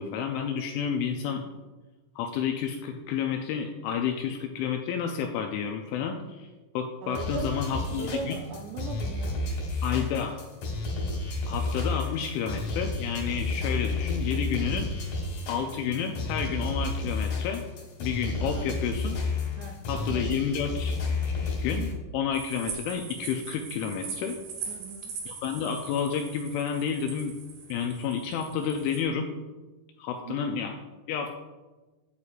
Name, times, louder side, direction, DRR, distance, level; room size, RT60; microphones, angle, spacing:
voice 1, 0.0-1.4 2.2-8.4 9.8-10.3 11.5-14.9 15.5-17.6 18.0-19.2 19.9-21.0 21.6-24.4 25.3-27.3 27.7-29.3 30.0-30.7 31.1-31.3, left 7 dB, 85° left, 4 dB, 2.7 m, -30 dB
voice 2, 7.0-9.5 9.9-10.0 18.4-19.0 19.6-20.4 24.7-25.2 30.3-30.6, right 4 dB, 85° right, 0 dB, 2.5 m, -39 dB
sound 1, 7.1-21.9, left 3 dB, 60° left, 2.3 m, -31 dB
sound 2, 22.3-29.0, right 5 dB, 70° right, 4.5 m, -41 dB
9.3 x 8.2 x 2.4 m, 1.2 s
omnidirectional pair, 5.8 m